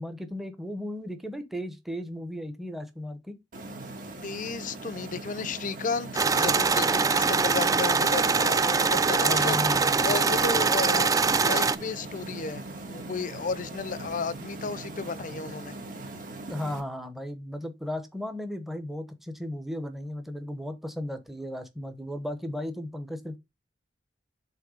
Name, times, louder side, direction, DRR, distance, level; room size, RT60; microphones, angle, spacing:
voice 1, 0.0-3.4 9.1-10.5 16.5-23.4, left 1 dB, ahead, 0.8 m, -35 dB
sound 1, 3.5-16.8, right 2 dB, 50° right, 1.7 m, -41 dB
voice 2, 4.2-9.6 10.0-11.1 11.4-12.6 12.9-15.7, left 4 dB, 45° left, 0.5 m, -33 dB
sound 2, 6.2-11.8, right 4 dB, 20° right, 0.4 m, -23 dB
sound 3, 11.1-15.9, right 1 dB, 75° right, 1.4 m, -49 dB
7.6 x 3.1 x 4.9 m
head